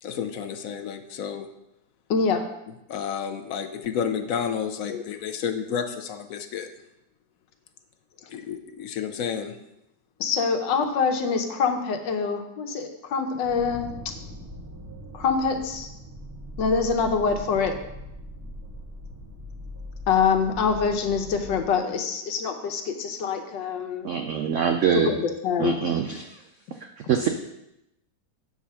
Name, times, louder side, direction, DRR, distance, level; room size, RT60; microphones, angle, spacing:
voice 1, 0.0-1.5 2.9-6.7 8.3-9.6, left 7 dB, 65° left, 7 dB, 0.9 m, -31 dB
voice 2, 10.2-13.9 15.1-15.9 16.6-17.7 20.1-24.1 24.9-25.8, left 5 dB, 90° left, 6 dB, 1.6 m, -25 dB
sound 1, 13.4-21.7, equal, 20° right, 0.4 m, -40 dB
voice 3, 24.0-25.1 25.6-26.4 27.1-27.3, right 7 dB, 85° right, 6 dB, 0.6 m, -24 dB
8.2 x 4.8 x 5.6 m, 0.88 s
omnidirectional pair, 1.9 m